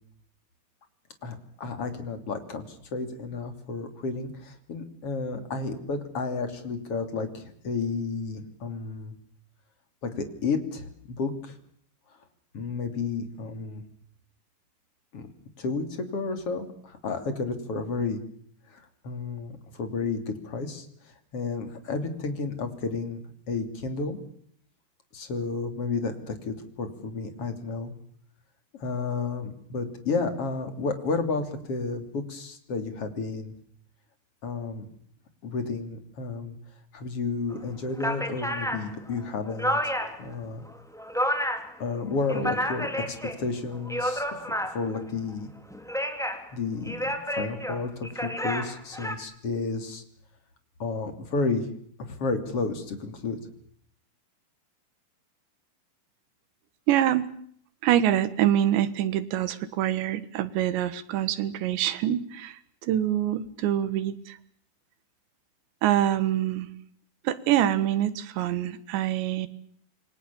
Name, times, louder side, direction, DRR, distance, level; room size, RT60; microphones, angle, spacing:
voice 1, 1.2-9.1 10.0-11.6 12.5-13.8 15.1-15.3 15.6-18.2 18.7-24.2 25.1-27.9 28.7-33.5 34.4-34.9 35.4-36.6 36.9-39.9 40.2-40.6 41.8-45.5 46.5-50.0 50.8-51.7 52.0-53.4, left 4 dB, 35° left, 8 dB, 3.5 m, -32 dB
sound 1, 37.5-37.6 37.9-40.3 40.7-41.7 42.1-43.4 43.7-45.0 45.7-46.5 46.9-49.1, equal, ahead, 2.0 m, -30 dB
voice 2, 56.9-57.3 57.8-62.6 62.8-64.4 65.8-66.7 67.3-69.5, right 11 dB, 85° right, 15 dB, 3.7 m, -25 dB
28.5 x 23.0 x 7.1 m, 0.63 s
omnidirectional pair, 5.0 m